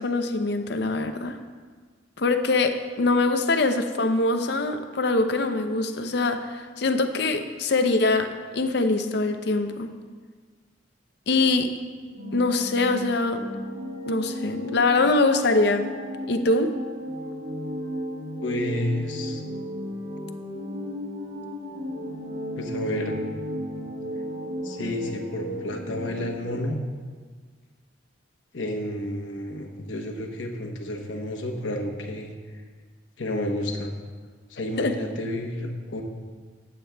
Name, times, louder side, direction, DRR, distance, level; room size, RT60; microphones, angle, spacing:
voice 1, 0.0-1.4 2.2-9.9 11.3-11.7 12.3-13.5 14.1-15.9 16.3-16.7 34.8-34.9, left 3 dB, 60° left, 7 dB, 0.6 m, -23 dB
sound 1, 12.1-26.6, equal, 80° right, 1.5 m, -34 dB
voice 2, 18.4-19.4 22.6-23.2 24.6-26.8 28.5-32.6 33.2-33.9 34.5-36.0, left 1 dB, 75° left, 2 dB, 1.0 m, -31 dB
14.0 x 8.7 x 2.3 m, 1.5 s
head